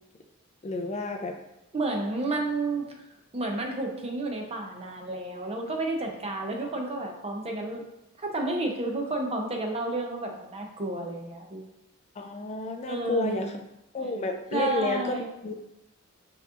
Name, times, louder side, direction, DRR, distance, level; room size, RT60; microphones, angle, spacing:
voice 1, 0.6-1.3 12.2-13.5 13.9-15.5, left 2 dB, 30° left, 4 dB, 0.4 m, -30 dB
voice 2, 1.7-3.1 3.3-7.8 8.2-11.7 12.9-13.5 14.5-15.3, right 2 dB, 30° right, 2 dB, 0.6 m, -31 dB
5.7 x 2.9 x 2.4 m, 0.89 s
head